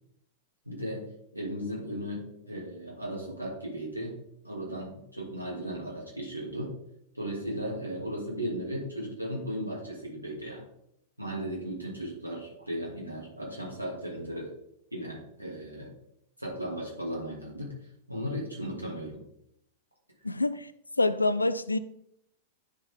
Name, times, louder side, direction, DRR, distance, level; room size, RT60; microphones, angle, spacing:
voice 1, 0.6-1.0 1.3-4.2 4.4-6.7 7.1-10.6 11.2-14.5 14.9-15.9 16.4-17.7 18.1-19.2, equal, 90° right, 2.7 m, -36 dB
voice 2, 20.2-20.7 21.0-21.8, left 2 dB, 80° left, 0.4 m, -26 dB
9.9 x 4.4 x 3.7 m
figure-of-eight pair, 95°, 0 cm